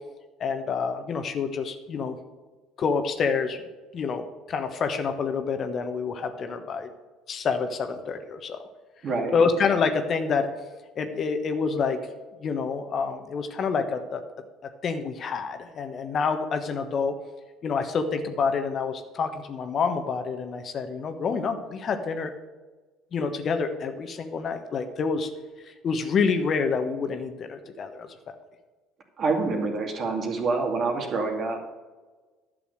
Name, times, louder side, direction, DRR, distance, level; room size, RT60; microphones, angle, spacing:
voice 1, 0.4-2.2 2.8-3.6 3.9-6.9 7.3-8.6 9.3-10.5 11.0-12.0 12.4-14.2 14.8-17.1 17.6-22.3 23.1-25.3 25.7-28.1, left 5 dB, 45° left, 7 dB, 1.2 m, -27 dB
voice 2, 9.0-9.3 29.2-31.6, right 3 dB, 45° right, 3 dB, 2.4 m, -26 dB
11.5 x 6.9 x 6.5 m, 1.3 s
figure-of-eight pair, 60°, 0 cm